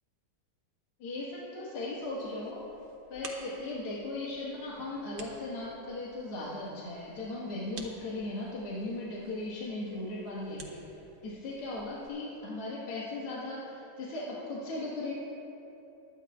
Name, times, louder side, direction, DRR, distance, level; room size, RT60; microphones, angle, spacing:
voice 1, 1.0-2.6 3.1-10.8 11.2-15.1, left 2 dB, 85° left, -6 dB, 2.5 m, -37 dB
sound 1, 1.9-12.1, right 4 dB, 80° right, 2.0 m, -53 dB
21.5 x 10.0 x 2.4 m, 2.9 s
omnidirectional pair, 2.4 m